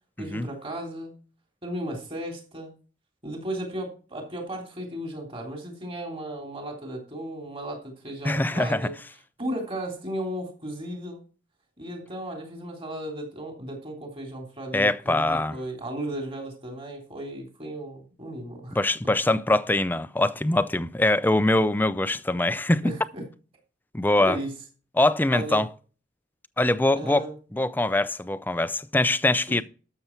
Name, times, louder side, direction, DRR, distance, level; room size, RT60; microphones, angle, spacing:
voice 1, 0.2-1.1 1.6-2.7 3.2-8.9 9.4-11.2 11.8-18.8 19.0-19.1 22.8-23.2 24.2-24.5 25.3-25.6 26.9-27.3 29.5-29.6, right 1 dB, 30° right, 3.2 m, -35 dB
voice 2, 8.2-8.9 14.7-15.6 18.7-22.9 23.9-24.4 25.0-25.7 26.6-27.2 27.5-29.6, left 2 dB, 10° left, 0.4 m, -23 dB
12.5 x 6.8 x 4.5 m
head